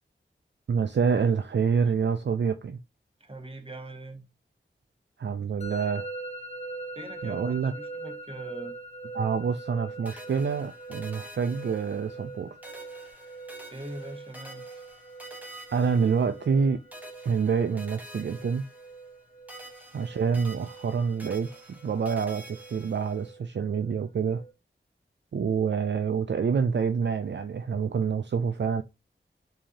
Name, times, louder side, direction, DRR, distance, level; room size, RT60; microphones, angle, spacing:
voice 1, 0.7-2.8 5.2-6.1 7.2-7.7 9.1-12.6 15.7-16.8 17.3-18.7 19.9-21.5 21.8-24.4 25.3-28.8, right 6 dB, 60° right, 0.4 m, -27 dB
voice 2, 3.2-4.3 6.9-8.7 13.7-14.9, right 2 dB, 25° right, 1.0 m, -42 dB
Musical instrument, 5.6-24.5, right 3 dB, 30° left, 1.0 m, -43 dB
sound 1, 10.0-12.3 12.6-16.6 16.9-19.2 19.5-23.3, right 1 dB, 10° right, 1.3 m, -48 dB
4.9 x 2.8 x 2.8 m
cardioid pair, 40°, 21 cm